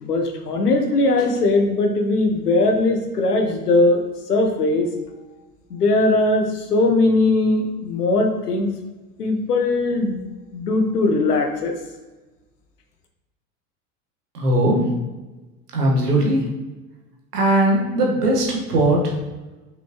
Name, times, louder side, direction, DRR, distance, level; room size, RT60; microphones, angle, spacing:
voice 1, 0.0-4.0 4.3-4.9 5.7-8.7 9.2-10.2 10.5-11.7, left 2 dB, 85° left, 4 dB, 1.1 m, -19 dB
voice 2, 14.3-14.9 15.7-16.4 17.3-19.1, right 1 dB, 80° right, -1 dB, 1.7 m, -19 dB
6.0 x 5.4 x 3.1 m, 1.2 s
figure-of-eight pair, 80°, 46 cm